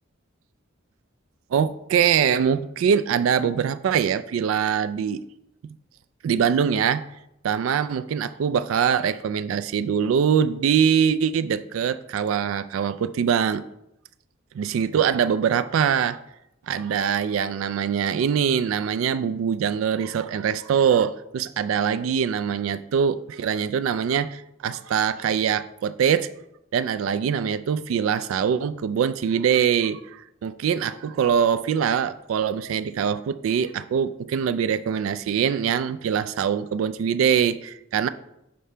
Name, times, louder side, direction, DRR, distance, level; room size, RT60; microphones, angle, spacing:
voice 1, 1.5-5.2 6.2-7.1 7.4-13.6 14.6-16.2 16.7-26.3 26.7-38.1, right 7 dB, 80° right, 13 dB, 0.3 m, -23 dB
6.6 x 5.4 x 3.3 m, 0.83 s
head